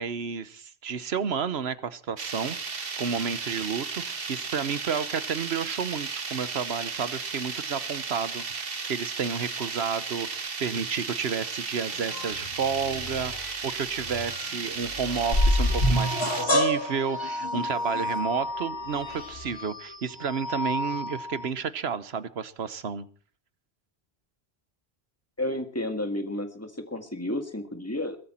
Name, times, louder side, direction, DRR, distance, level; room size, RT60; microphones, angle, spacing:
voice 1, 0.0-23.1, right 6 dB, 80° right, 14 dB, 1.2 m, -31 dB
sound 1, 2.2-16.4, right 5 dB, 65° right, 1.5 m, -35 dB
sound 2, 11.9-19.6, left 1 dB, 60° left, 4.5 m, -44 dB
sound 3, 15.3-21.5, left 1 dB, 80° left, 2.9 m, -27 dB
voice 2, 25.4-28.2, left 1 dB, 15° left, 6 dB, 1.9 m, -31 dB
22.0 x 12.5 x 4.4 m, 0.43 s
omnidirectional pair, 1.1 m